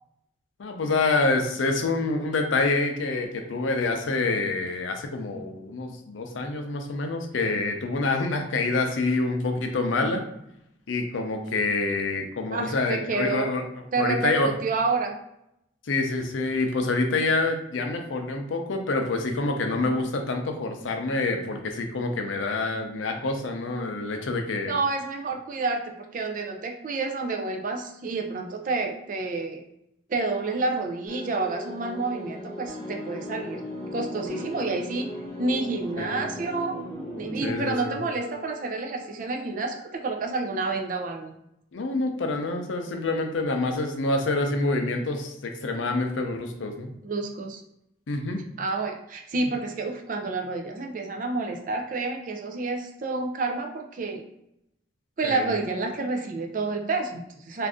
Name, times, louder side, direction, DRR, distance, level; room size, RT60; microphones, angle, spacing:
voice 1, 0.6-10.2 10.9-13.6 14.0-14.5 15.9-24.8 36.0-36.1 37.4-37.9 41.7-46.9 48.1-48.4 55.2-55.5, left 3 dB, 80° left, 4 dB, 0.5 m, -27 dB
voice 2, 12.5-13.5 13.9-15.1 24.7-29.6 30.1-33.6 33.9-35.1 35.4-36.8 37.1-41.3 47.0-47.6 48.6-54.2 55.2-57.7, right 3 dB, 45° right, 3 dB, 0.4 m, -29 dB
sound 1, 31.1-39.5, left 1 dB, 15° left, 0.9 m, -37 dB
2.5 x 2.5 x 3.5 m, 0.81 s
head